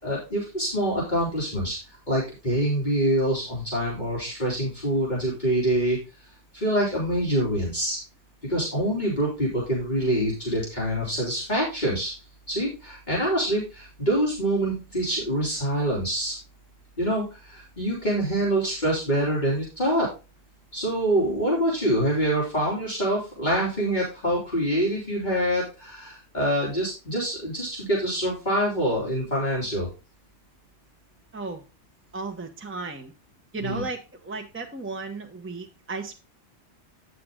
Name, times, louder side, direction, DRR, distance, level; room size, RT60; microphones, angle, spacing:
voice 1, 0.0-1.8 2.1-6.0 6.5-8.0 8.5-12.1 12.5-16.3 17.0-20.1 20.7-29.9 33.6-33.8, right 1 dB, 40° left, -5 dB, 3.3 m, -25 dB
voice 2, 32.1-33.1 33.5-36.1, right 3 dB, 10° right, 3 dB, 1.0 m, -34 dB
9.4 x 6.8 x 3.7 m, 0.28 s
omnidirectional pair, 1.2 m